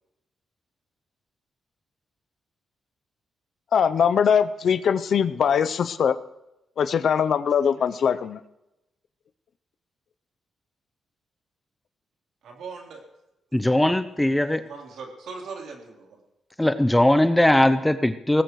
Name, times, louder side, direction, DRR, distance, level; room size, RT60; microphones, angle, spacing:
voice 1, 3.7-6.2 6.8-8.4, left 7 dB, 60° left, 12 dB, 0.6 m, -21 dB
voice 2, 12.4-13.0 14.2-16.2, right 4 dB, 80° right, 0 dB, 3.6 m, -40 dB
voice 3, 13.5-14.6 16.6-18.4, left 1 dB, 5° left, 11 dB, 0.6 m, -20 dB
22.5 x 19.0 x 3.2 m, 0.92 s
cardioid pair, 135°, 0 cm